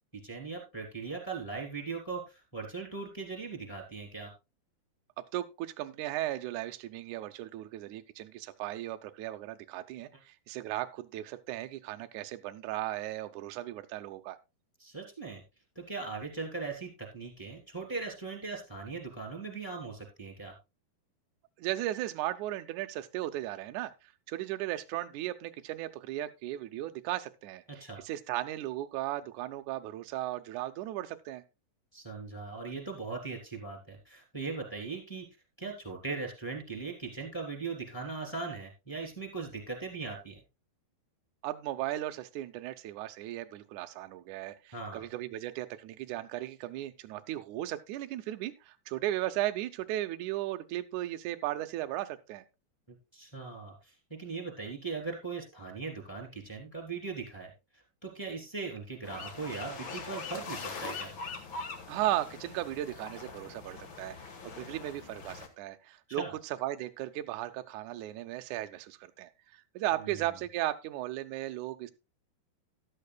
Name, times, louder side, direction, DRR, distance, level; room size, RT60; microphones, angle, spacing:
voice 1, 0.1-4.3 14.8-15.4 15.7-20.5 27.7-28.0 31.9-35.3 35.6-40.4 44.7-45.0 52.9-61.1 66.1-66.3 70.0-70.3, right 4 dB, 5° left, 1 dB, 2.7 m, -39 dB
voice 2, 5.3-14.4 21.6-31.4 41.4-52.4 61.9-71.9, right 14 dB, 85° right, 8 dB, 1.7 m, -36 dB
sound 1, 59.0-65.5, left 4 dB, 50° left, 1.5 m, -42 dB
13.5 x 12.0 x 2.3 m, 0.26 s
omnidirectional pair, 4.5 m